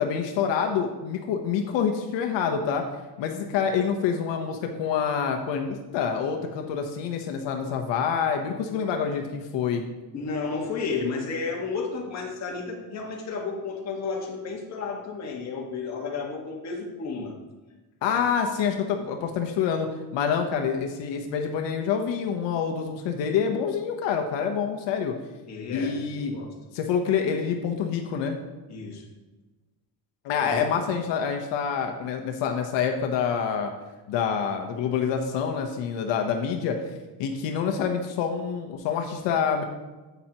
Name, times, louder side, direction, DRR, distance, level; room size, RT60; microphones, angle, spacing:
voice 1, 0.0-2.8 3.2-9.8 18.0-25.1 25.7-26.4 26.7-28.4 30.2-33.7 34.1-36.8 37.2-39.6, left 7 dB, 85° left, 4 dB, 1.1 m, -27 dB
voice 2, 10.1-17.3 18.1-18.2 25.5-26.5 28.7-29.0 30.4-30.7, left 4 dB, 40° left, -1 dB, 1.6 m, -32 dB
9.8 x 8.1 x 3.0 m, 1.2 s
cardioid pair, 170°, 42 cm